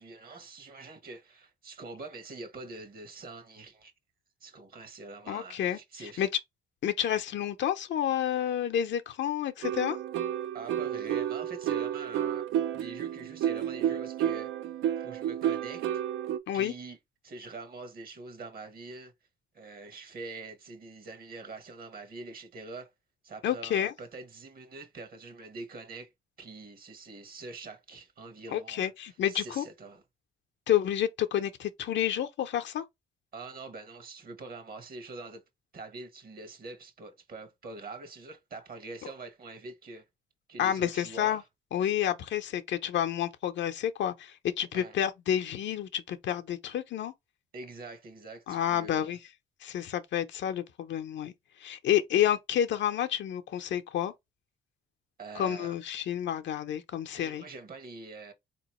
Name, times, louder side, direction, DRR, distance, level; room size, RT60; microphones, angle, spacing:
voice 1, 0.0-3.9 4.4-6.3 10.5-12.5 12.7-14.5 15.0-15.9 16.5-17.0 17.2-19.1 19.5-22.9 23.2-26.1 26.4-30.0 33.3-35.4 35.7-40.1 40.5-41.4 44.7-44.9 47.5-49.2 55.2-55.8 57.2-58.3, right 3 dB, 50° right, 1.2 m, -44 dB
voice 2, 5.3-6.3 6.8-10.0 16.5-16.7 23.4-23.9 28.5-29.7 30.7-32.8 40.6-41.4 41.7-47.1 48.5-49.2 49.6-51.3 51.6-54.1 55.4-57.4, left 10 dB, 65° left, 0.6 m, -29 dB
sound 1, 9.6-16.4, right 10 dB, 80° right, 0.5 m, -31 dB
3.9 x 2.9 x 3.0 m
cardioid pair, 90°, 20 cm